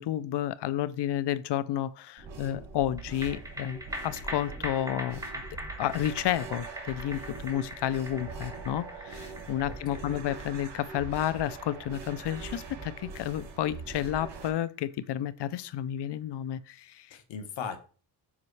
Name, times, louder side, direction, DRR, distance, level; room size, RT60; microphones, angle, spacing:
voice 1, 0.0-5.2 5.8-17.2, left 12 dB, 65° left, 0.6 m, -31 dB
sound 1, 2.2-14.5, right 4 dB, 90° right, 2.7 m, -43 dB
sound 2, 3.0-15.6 16.0-16.1, right 1 dB, 10° right, 1.3 m, -43 dB
voice 2, 9.7-10.2 17.1-17.8, left 6 dB, 85° left, 1.3 m, -39 dB
7.3 x 5.2 x 3.2 m
cardioid pair, 115°, 44 cm